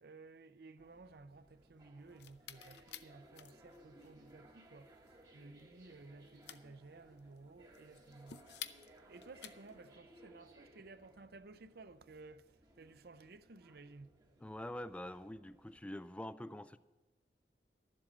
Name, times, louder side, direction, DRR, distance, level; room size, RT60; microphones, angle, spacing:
voice 1, 0.0-8.4 8.8-14.2, right 3 dB, 60° right, 0.6 m, -56 dB
sound 1, 0.8-15.8, right 1 dB, 20° right, 1.0 m, -63 dB
sound 2, 2.0-9.9, left 10 dB, 70° left, 0.6 m, -53 dB
voice 2, 14.4-16.8, left 1 dB, 5° left, 0.3 m, -45 dB
12.5 x 7.6 x 7.4 m
head